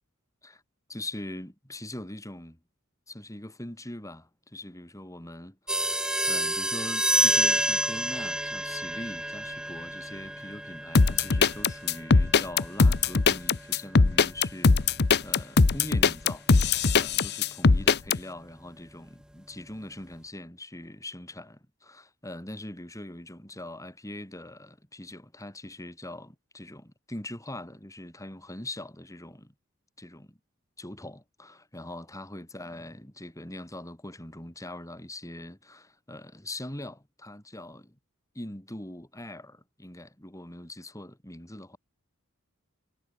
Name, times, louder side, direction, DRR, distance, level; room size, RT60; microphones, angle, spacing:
voice 1, 0.9-2.6 3.1-5.9 6.3-14.9 15.2-29.5 30.0-30.4 30.8-38.0 38.3-41.8, left 1 dB, 15° left, 4.3 m, -42 dB
sound 1, 5.7-15.9, right 1 dB, 5° right, 1.0 m, -30 dB
sound 2, 10.9-18.2, left 4 dB, 50° left, 0.8 m, -20 dB
head